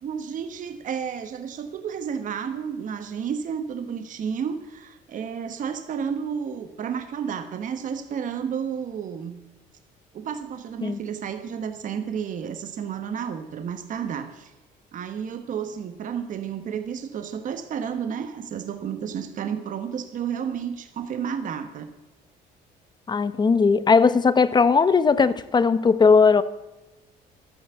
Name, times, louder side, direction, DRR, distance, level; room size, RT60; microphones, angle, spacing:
voice 1, 0.0-9.4 10.1-14.5 14.9-21.9, right 7 dB, 50° right, 1.2 m, -31 dB
voice 2, 23.1-26.4, left 5 dB, 25° left, 0.8 m, -18 dB
12.5 x 9.4 x 8.1 m
cardioid pair, 110°, 17 cm